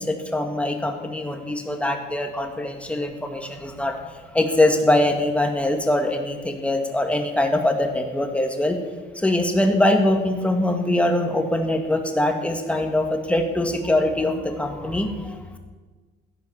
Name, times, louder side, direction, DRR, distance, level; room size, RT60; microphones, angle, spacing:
voice 1, 0.0-8.8 9.1-15.6, left 1 dB, 5° left, 4 dB, 2.2 m, -23 dB
15.5 x 10.5 x 7.3 m, 1.4 s
cardioid pair, 110°, 17 cm